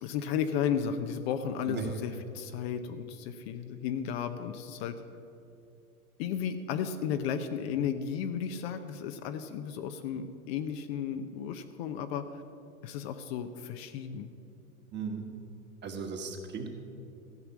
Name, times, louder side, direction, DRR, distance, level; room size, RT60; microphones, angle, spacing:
voice 1, 0.0-4.9 6.2-12.2 12.8-14.3, left 8 dB, 45° left, 8 dB, 0.8 m, -34 dB
voice 2, 14.9-15.3 15.8-16.7, right 5 dB, 25° right, 4 dB, 1.5 m, -36 dB
15.0 x 5.8 x 8.5 m, 2.6 s
hypercardioid pair, 110°, 45 cm